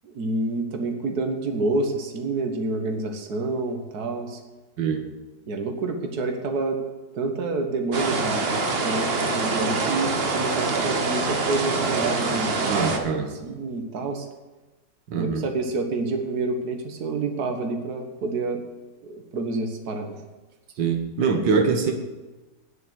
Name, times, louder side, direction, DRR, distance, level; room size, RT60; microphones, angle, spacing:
voice 1, 0.0-4.4 5.5-6.8 7.1-8.5 8.8-14.3 15.1-18.6 19.0-20.2, right 3 dB, 60° right, 4 dB, 2.0 m, -28 dB
voice 2, 4.8-5.1 12.7-13.3 15.1-15.5 20.8-21.9, right 5 dB, 90° right, 5 dB, 2.0 m, -23 dB
sound 1, 7.9-13.0, right 3 dB, 40° right, 1.3 m, -25 dB
9.4 x 8.2 x 9.6 m, 1.2 s
omnidirectional pair, 1.9 m